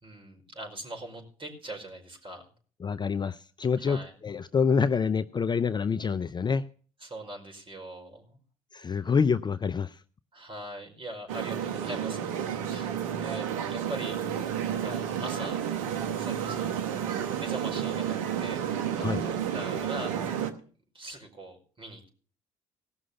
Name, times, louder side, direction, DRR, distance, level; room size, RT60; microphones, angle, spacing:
voice 1, 0.0-2.4 3.8-4.1 7.0-8.4 10.3-12.2 12.7-14.2 14.8-15.6 16.2-16.8 17.4-18.6 18.9-20.1 20.9-22.1, right 1 dB, 30° right, 3 dB, 5.0 m, -41 dB
voice 2, 2.8-6.6 8.7-10.0 19.0-19.2, left 6 dB, 25° left, 13 dB, 0.5 m, -27 dB
sound 1, 11.3-20.5, right 9 dB, 80° right, 1.0 m, -31 dB
17.5 x 6.2 x 6.9 m, 0.43 s
hypercardioid pair, 55°, 17 cm